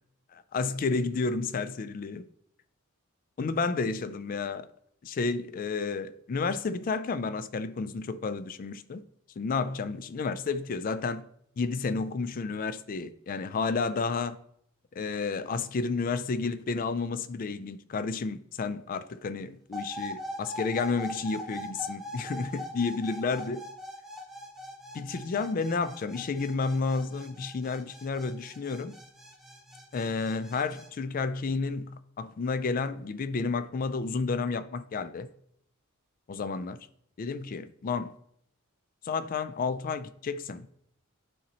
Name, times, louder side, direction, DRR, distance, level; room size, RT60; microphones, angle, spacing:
voice 1, 0.3-2.2 3.4-4.7 5.0-9.0 9.4-11.2 11.6-14.4 14.9-23.6 24.9-28.9 29.9-35.3 36.3-36.8 37.2-38.1 39.0-40.7, left 4 dB, 40° left, 0.3 m, -31 dB
sound 1, 19.7-30.9, left 1 dB, ahead, 0.8 m, -42 dB
10.0 x 4.1 x 2.9 m
head